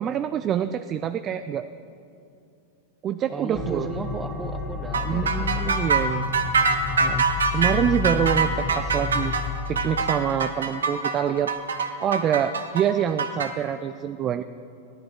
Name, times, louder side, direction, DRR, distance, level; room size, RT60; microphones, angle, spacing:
voice 1, 0.0-1.7 3.0-3.9 5.0-6.3 7.0-7.3 7.5-9.3 9.7-11.5 12.0-14.4, right 9 dB, 30° right, 11 dB, 0.3 m, -26 dB
voice 2, 3.3-5.8, right 3 dB, 15° right, 6 dB, 1.0 m, -34 dB
sound 1, 3.5-9.5, left 5 dB, 20° left, 1.1 m, -31 dB
sound 2, 4.9-13.5, right 5 dB, 80° right, 0.8 m, -24 dB
13.0 x 10.5 x 3.8 m, 2.5 s
hypercardioid pair, 100°, 0 cm